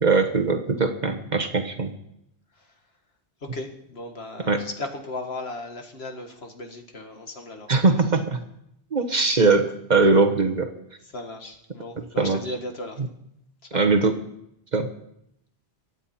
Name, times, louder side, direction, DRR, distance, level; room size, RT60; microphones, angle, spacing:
voice 1, 0.0-1.9 4.5-4.6 7.7-8.4 8.9-10.7 12.2-12.4 13.7-14.2 14.7-14.9, right 3 dB, 45° right, 5 dB, 1.3 m, -21 dB
voice 2, 3.4-7.7 11.0-13.0 13.6-13.9, left 2 dB, 70° left, 4 dB, 2.0 m, -36 dB
24.5 x 9.3 x 4.3 m, 0.76 s
omnidirectional pair, 1.1 m